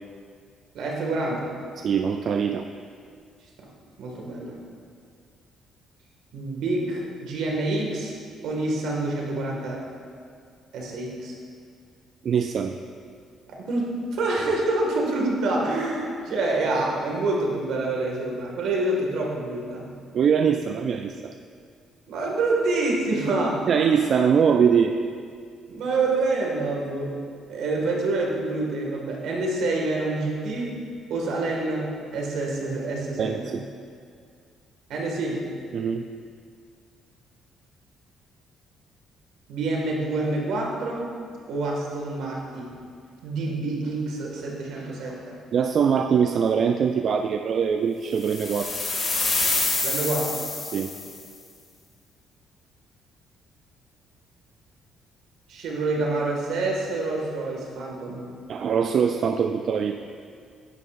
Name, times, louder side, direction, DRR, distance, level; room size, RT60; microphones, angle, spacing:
voice 1, 0.7-1.5 3.6-3.7 4.0-4.6 6.3-8.1 8.4-9.9 10.7-11.3 13.5-19.9 22.1-23.6 25.7-27.2 27.5-30.7 31.1-33.6 34.9-35.5 39.5-41.1 41.5-42.8 43.2-45.4 49.8-50.4 55.5-58.3, right 2 dB, 75° right, -1 dB, 1.8 m, -27 dB
voice 2, 1.8-2.7 12.2-12.7 20.1-21.3 23.7-24.9 33.2-33.6 35.7-36.0 45.5-48.8 50.7-50.9 58.5-60.0, right 7 dB, 50° right, 6 dB, 0.3 m, -22 dB
sound 1, 48.2-51.2, left 3 dB, 40° left, 1.9 m, -27 dB
10.5 x 9.8 x 2.5 m, 2.2 s
cardioid pair, 135°, 0 cm